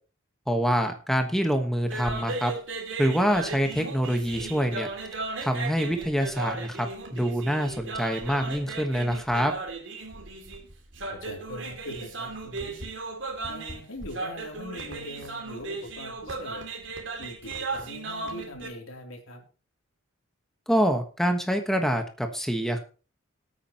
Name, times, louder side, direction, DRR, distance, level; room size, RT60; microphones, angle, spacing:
voice 1, 0.5-2.5 3.0-4.9 5.4-9.5 20.7-22.8, equal, ahead, 5 dB, 1.3 m, -26 dB
sound 1, 1.8-18.7, right 3 dB, 60° right, 2.7 m, -36 dB
voice 2, 11.1-12.8 13.5-16.7 17.2-19.4, left 1 dB, 85° left, 2 dB, 3.3 m, -41 dB
19.0 x 8.9 x 3.0 m, 0.35 s
head